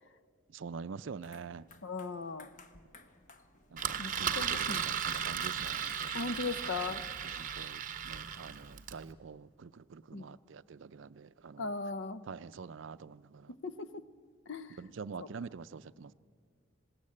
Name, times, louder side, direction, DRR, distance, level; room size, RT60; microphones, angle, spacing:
voice 1, 0.5-1.7 3.7-4.4 4.7-6.3 7.4-11.7 12.3-13.5 14.8-16.1, right 5 dB, 70° right, 0.5 m, -46 dB
sound 1, 1.1-7.1, left 4 dB, 40° left, 1.0 m, -56 dB
voice 2, 1.8-2.5 4.0-4.8 6.1-7.0 10.1-10.3 11.6-12.2 13.6-14.0 14.5-14.8 15.2-15.3, left 3 dB, 65° left, 0.6 m, -38 dB
Engine, 3.8-9.0, right 8 dB, 40° right, 0.9 m, -36 dB
20.0 x 17.5 x 8.6 m
head